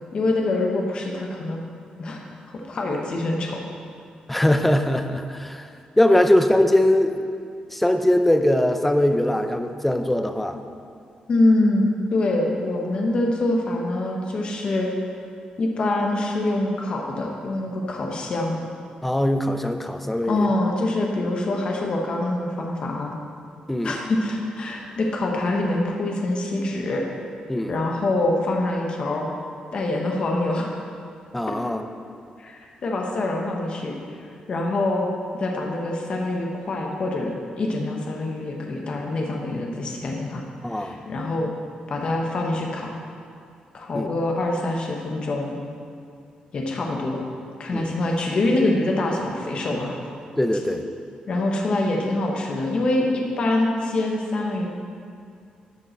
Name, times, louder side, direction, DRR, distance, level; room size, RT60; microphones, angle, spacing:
voice 1, 0.1-1.6 2.0-2.2 2.5-3.6 11.3-14.9 15.6-18.6 20.3-23.1 23.8-27.0 27.7-29.3 29.7-30.8 32.4-35.0 35.3-40.4 40.7-41.5 41.9-42.9 43.7-45.6 46.5-47.2 47.6-50.0 51.3-54.7, left 2 dB, 40° left, 0 dB, 0.9 m, -25 dB
voice 2, 4.3-5.7 6.0-7.2 7.7-10.6 19.0-20.5 23.7-24.0 27.5-27.7 31.3-31.9 40.6-41.0 43.9-44.2 47.7-47.9 50.4-50.8, left 1 dB, 5° left, 7 dB, 0.4 m, -21 dB
13.0 x 5.3 x 4.4 m, 2.4 s
wide cardioid pair, 170°, 3 cm